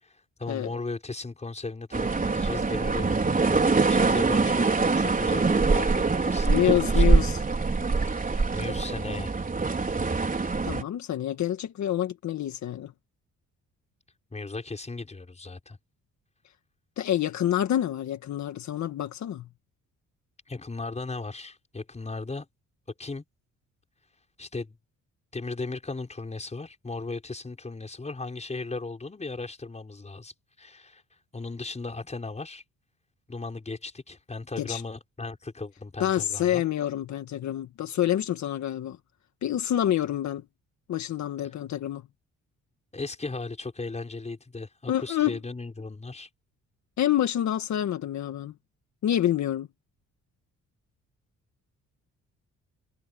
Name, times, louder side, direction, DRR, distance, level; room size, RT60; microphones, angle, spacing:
voice 1, 0.0-7.2 8.1-9.3 14.3-15.8 20.5-22.5 23.0-23.2 24.4-24.8 25.3-31.0 31.3-32.6 33.3-36.6 42.9-46.3, left 3 dB, 20° left, 5.5 m, -37 dB
sound 1, 1.9-10.8, right 4 dB, 30° right, 4.7 m, -24 dB
voice 2, 6.5-7.4 10.6-12.9 17.0-19.5 34.6-34.8 36.0-39.0 39.4-40.4 40.9-42.0 44.9-45.4 47.0-48.5 49.0-49.7, left 11 dB, 70° left, 1.7 m, -27 dB
cardioid pair, 90°, 30 cm